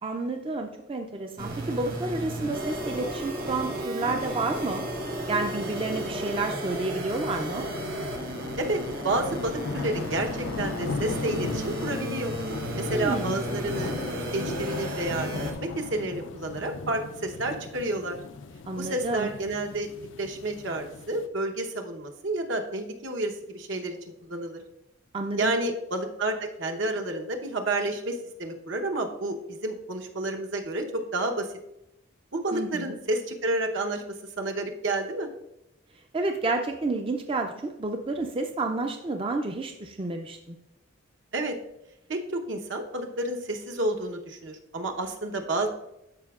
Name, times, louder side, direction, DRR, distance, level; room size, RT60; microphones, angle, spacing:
voice 1, 0.0-4.8 5.3-7.7 12.9-13.4 18.7-19.3 25.1-25.5 32.5-32.9 36.1-40.6, right 3 dB, 25° right, 4 dB, 0.4 m, -30 dB
sound 1, 1.4-15.5, right 1 dB, 45° right, 1.1 m, -34 dB
sound 2, 4.1-21.3, left 4 dB, 70° left, 0.4 m, -37 dB
voice 2, 8.6-12.3 12.7-18.2 18.8-19.9 20.2-24.0 24.2-24.6 25.4-31.5 32.3-34.0 34.4-35.3 41.3-41.5 42.1-45.7, right 2 dB, 70° right, 3 dB, 0.9 m, -30 dB
12.5 x 5.1 x 2.4 m, 0.86 s
head